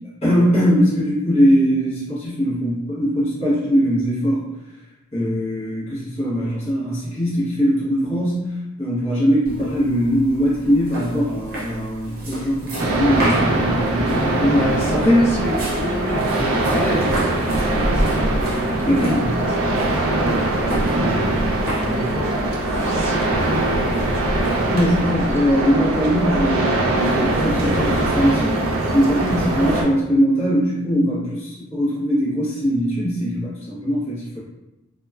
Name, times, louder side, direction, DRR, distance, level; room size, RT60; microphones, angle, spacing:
voice 1, 0.2-4.4 5.1-15.3 18.9-19.3 24.7-28.6 28.9-34.4, equal, 30° left, -9 dB, 0.8 m, -20 dB
sound 1, 9.4-25.0, right 1 dB, 45° right, 0.7 m, -31 dB
sound 2, 12.8-29.8, right 2 dB, 85° right, 0.4 m, -22 dB
voice 2, 14.5-19.3 19.6-21.2 21.8-22.3 22.6-24.1 29.3-29.5, left 1 dB, 10° left, -5 dB, 0.4 m, -30 dB
2.8 x 2.2 x 2.3 m, 0.97 s
head